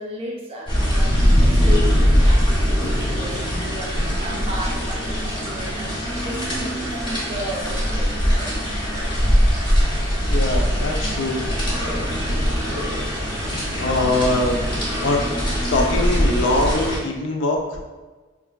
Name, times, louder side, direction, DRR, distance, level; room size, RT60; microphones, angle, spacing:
voice 1, 0.0-8.7, equal, 30° right, -1 dB, 0.4 m, -34 dB
sound 1, 0.7-17.0, equal, 25° left, 0.6 m, -21 dB
voice 2, 10.3-11.4 13.8-14.6 15.0-15.2 15.7-17.8, left 2 dB, 65° left, 2 dB, 0.4 m, -22 dB
3.2 x 2.4 x 2.2 m, 1.3 s
head